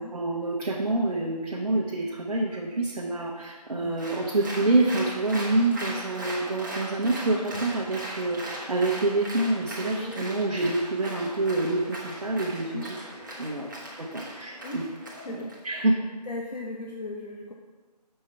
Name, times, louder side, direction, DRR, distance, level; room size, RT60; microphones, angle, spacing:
voice 1, 0.0-13.0 13.4-13.7 14.0-14.8 15.3-15.9, right 2 dB, 65° right, -4 dB, 1.0 m, -27 dB
Applause, 4.0-15.6, right 1 dB, 30° right, 1.1 m, -39 dB
voice 2, 9.8-10.4 12.7-12.9 14.6-14.9 15.2-15.9 16.2-17.5, left 2 dB, 70° left, -1 dB, 0.9 m, -38 dB
6.7 x 4.6 x 4.3 m, 1.3 s
figure-of-eight pair, 170°, 21 cm